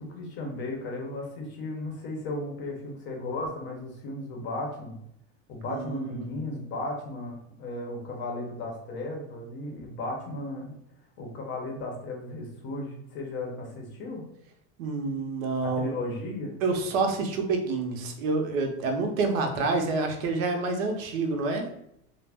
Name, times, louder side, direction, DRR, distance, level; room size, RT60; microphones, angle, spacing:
voice 1, 0.0-4.9 5.5-10.8 11.2-14.2 15.6-16.6, left 2 dB, 30° left, 0 dB, 0.6 m, -35 dB
voice 2, 5.7-6.3 14.8-15.9 16.6-21.7, right 3 dB, 85° right, 4 dB, 0.7 m, -28 dB
2.4 x 2.0 x 3.3 m, 0.75 s
supercardioid pair, 150°, 39 cm